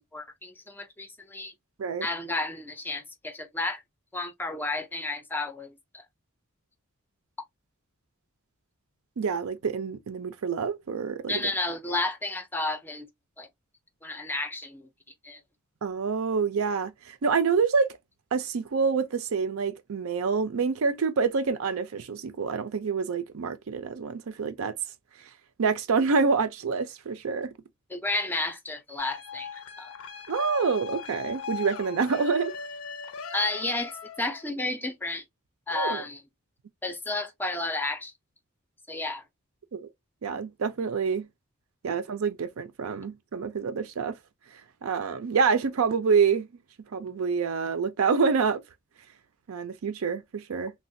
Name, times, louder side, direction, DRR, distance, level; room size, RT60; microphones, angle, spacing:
voice 1, 0.0-1.5 2.0-3.8 4.1-6.0 11.3-13.1 13.4-13.5 14.0-14.9 15.2-15.4 27.9-29.9 33.3-35.2 35.7-36.2 36.8-38.1 38.9-39.2, left 2 dB, 10° left, 0.4 m, -32 dB
voice 2, 9.2-11.5 15.8-18.0 18.3-24.8 25.6-27.5 30.3-32.5 35.7-36.0 39.7-39.9 40.2-41.3 41.8-44.2 44.8-46.5 46.9-48.6 49.5-50.7, right 5 dB, 75° right, 0.5 m, -27 dB
sound 1, 29.0-34.5, left 5 dB, 80° left, 0.5 m, -39 dB
3.2 x 2.3 x 2.6 m
head